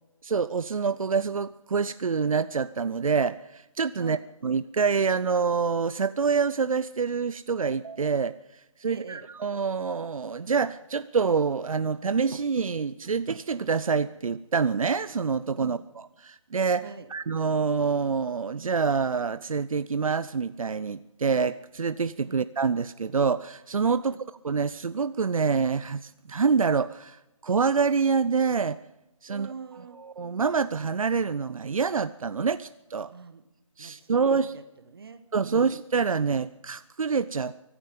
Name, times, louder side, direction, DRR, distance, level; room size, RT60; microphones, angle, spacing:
voice 1, 0.2-15.8 16.2-16.8 17.1-24.2 24.4-28.8 29.2-29.5 30.0-33.1 33.8-34.5 35.3-37.6, right 5 dB, 80° right, 15 dB, 0.5 m, -26 dB
voice 2, 8.9-9.3 15.6-15.8 16.8-17.1 22.2-22.5 24.0-24.2 29.3-30.0 33.1-33.4 33.8-35.7, right 5 dB, 45° right, 11 dB, 1.3 m, -44 dB
24.0 x 9.8 x 5.3 m, 0.93 s
figure-of-eight pair, 165°, 17 cm